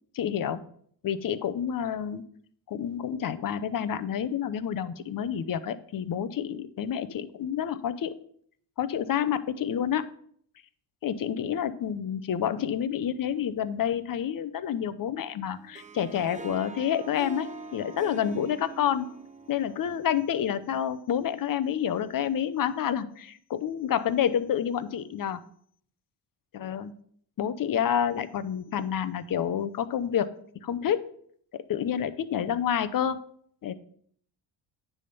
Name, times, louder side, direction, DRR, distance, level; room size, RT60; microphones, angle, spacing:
voice 1, 0.1-0.6 1.0-2.2 2.7-8.1 8.8-10.1 11.0-19.1 19.5-25.4 26.5-26.9 27.4-30.3 30.6-31.0 31.7-33.2 33.6-33.7, left 9 dB, 45° left, 14 dB, 0.7 m, -29 dB
Harp, 15.5-20.8, right 3 dB, 15° right, 0.6 m, -43 dB
9.8 x 3.6 x 5.4 m, 0.62 s
cardioid pair, 85°, 49 cm